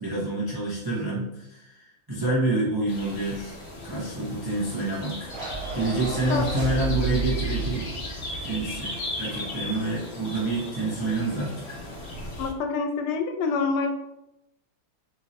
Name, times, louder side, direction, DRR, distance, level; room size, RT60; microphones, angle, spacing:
voice 1, 0.0-3.6 3.8-5.3 5.7-7.9 8.4-8.9 9.2-11.8, right 2 dB, 30° right, -6 dB, 0.4 m, -28 dB
sound 1, 2.9-12.5, left 2 dB, 55° left, 0.6 m, -37 dB
sound 2, 5.3-9.7, right 2 dB, 45° right, 1.0 m, -32 dB
voice 2, 12.4-14.0, left 4 dB, 80° left, 6 dB, 1.4 m, -26 dB
3.6 x 3.1 x 4.2 m, 0.88 s
omnidirectional pair, 2.4 m